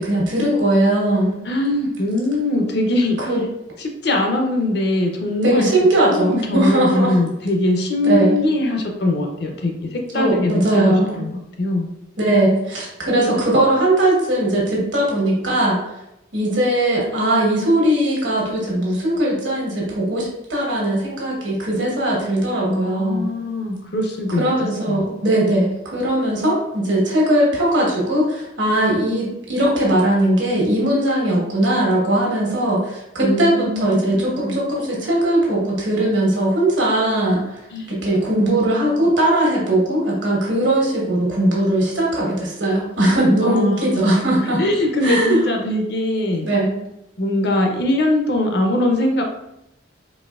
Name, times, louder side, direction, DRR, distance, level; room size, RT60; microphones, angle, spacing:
voice 1, 0.0-1.4 3.2-3.4 5.4-7.2 8.0-8.4 10.1-11.1 12.2-15.8 16.3-23.3 24.3-37.6 37.9-44.6 45.0-45.4 46.4-46.7, right 1 dB, 75° right, -3 dB, 1.3 m, -19 dB
voice 2, 1.5-3.2 3.8-5.7 6.0-11.9 22.7-24.4 24.9-25.0 33.2-34.6 37.7-37.9 38.3-39.1 43.4-44.1 44.6-46.5 47.2-49.2, left 1 dB, 55° left, 3 dB, 0.6 m, -22 dB
4.1 x 2.9 x 2.4 m, 0.86 s
head